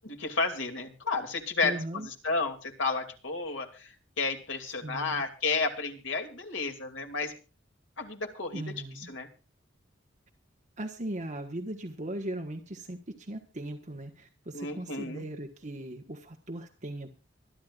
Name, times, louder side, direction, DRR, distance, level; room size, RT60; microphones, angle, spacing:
voice 1, 0.0-7.3 8.0-8.7 9.1-9.3 14.5-15.2, left 4 dB, 80° left, 4 dB, 2.7 m, -32 dB
voice 2, 1.6-2.1 4.8-5.2 8.5-9.1 10.8-17.1, right 1 dB, 40° right, 4 dB, 1.4 m, -38 dB
25.5 x 10.5 x 2.5 m, 0.34 s
head